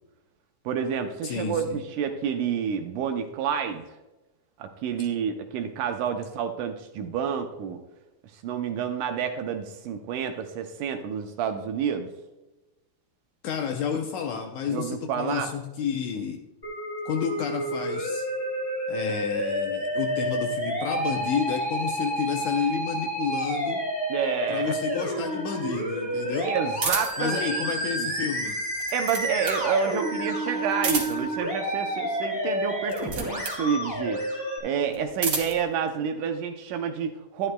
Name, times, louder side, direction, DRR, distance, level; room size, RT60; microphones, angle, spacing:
voice 1, 0.7-3.8 4.6-7.8 8.3-12.1 14.7-15.5 24.1-24.7 26.4-27.7 28.0-28.1 28.9-34.2 34.6-37.5, right 7 dB, 75° right, 6 dB, 2.0 m, -29 dB
voice 2, 1.2-1.8 13.4-16.4 17.1-18.3 18.9-23.8 24.5-26.5 27.2-28.5, left 7 dB, 75° left, 4 dB, 1.8 m, -30 dB
Musical instrument, 16.6-34.6, right 1 dB, 10° left, 1.9 m, -30 dB
sound 1, 26.8-27.3 28.6-29.7 30.7-31.4 32.8-33.6 34.9-35.6, right 4 dB, 60° right, 1.1 m, -30 dB
11.0 x 11.0 x 2.2 m, 1.1 s
omnidirectional pair, 4.0 m